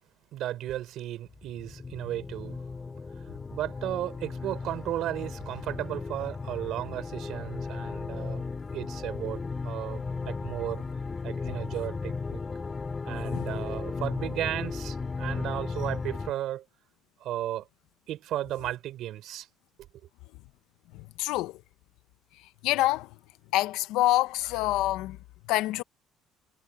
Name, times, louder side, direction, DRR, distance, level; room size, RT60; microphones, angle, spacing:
voice 1, 0.3-2.6 3.5-8.4 8.7-10.8 11.2-12.4 13.0-16.6 17.2-17.7 18.1-19.5, right 13 dB, 55° right, 3.8 m, -34 dB
sound 1, 1.3-16.3, left 4 dB, 20° left, 3.1 m, -35 dB
voice 2, 13.3-13.7 20.9-21.6 22.6-23.2 23.5-25.2 25.5-25.8, left 17 dB, 75° left, 0.7 m, -27 dB
cardioid pair, 155°, 0 cm